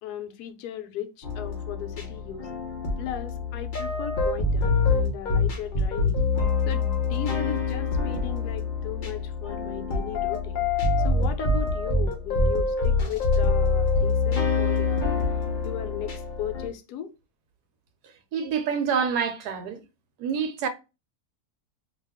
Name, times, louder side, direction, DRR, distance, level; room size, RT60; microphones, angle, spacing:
voice 1, 0.0-2.5 3.0-6.2 6.7-10.6 11.0-15.1 15.6-17.1, left 10 dB, 85° left, 1.1 m, -37 dB
sound 1, 1.2-16.7, left 4 dB, 55° left, 0.5 m, -25 dB
voice 2, 18.3-19.8 20.2-20.7, right 6 dB, 85° right, 1.1 m, -27 dB
2.8 x 2.3 x 3.4 m
omnidirectional pair, 1.6 m